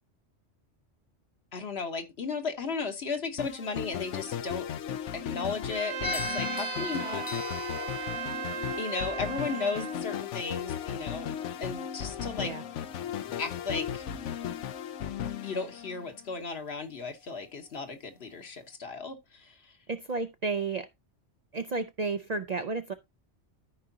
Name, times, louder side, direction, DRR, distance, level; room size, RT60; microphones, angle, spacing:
voice 1, 1.5-4.7 5.1-7.3 8.8-11.3 11.6-12.5 13.4-14.0 15.4-19.5, left 4 dB, 60° left, 1.4 m, -35 dB
sound 1, 3.4-16.3, left 9 dB, 80° left, 1.0 m, -36 dB
Trumpet, 5.7-10.0, right 11 dB, 90° right, 1.0 m, -37 dB
sound 2, 6.0-14.4, left 4 dB, 30° left, 0.4 m, -42 dB
voice 2, 19.9-20.9 21.5-22.9, right 4 dB, 50° right, 0.5 m, -32 dB
13.5 x 5.0 x 2.7 m
omnidirectional pair, 1.2 m